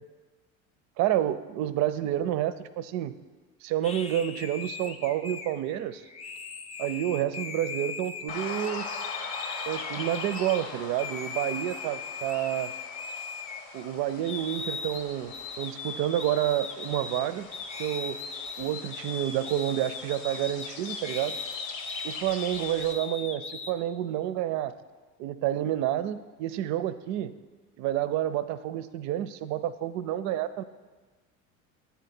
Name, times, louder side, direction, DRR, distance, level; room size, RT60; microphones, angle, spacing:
voice 1, 1.0-3.1 3.6-6.0 6.8-8.9 9.7-12.7 13.7-17.5 17.8-18.2 18.6-21.4 22.0-24.7 25.2-27.3 27.8-30.6, right 12 dB, 45° right, 14 dB, 0.4 m, -29 dB
sound 1, 3.8-10.6 11.0-13.9 14.2-23.7, left 5 dB, 20° left, 0.4 m, -39 dB
sound 2, 8.3-22.9, left 4 dB, 75° left, 0.9 m, -41 dB
9.3 x 4.1 x 4.2 m, 1.3 s
hypercardioid pair, 70°, 40 cm